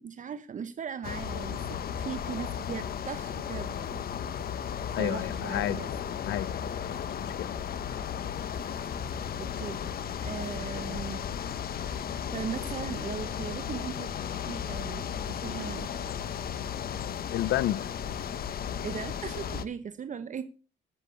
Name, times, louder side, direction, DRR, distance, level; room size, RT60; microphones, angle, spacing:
voice 1, 0.0-4.4 5.0-5.9 9.4-9.8 10.2-11.2 12.3-14.1 14.5-15.9 18.8-20.4, right 7 dB, 40° right, 1.0 m, -38 dB
sound 1, 1.0-19.7, left 8 dB, 50° left, 1.1 m, -35 dB
voice 2, 4.9-5.8 6.3-6.7 7.2-7.5 17.3-17.9, left 13 dB, 70° left, 0.8 m, -30 dB
11.5 x 8.3 x 6.9 m
cardioid pair, 100°, 19 cm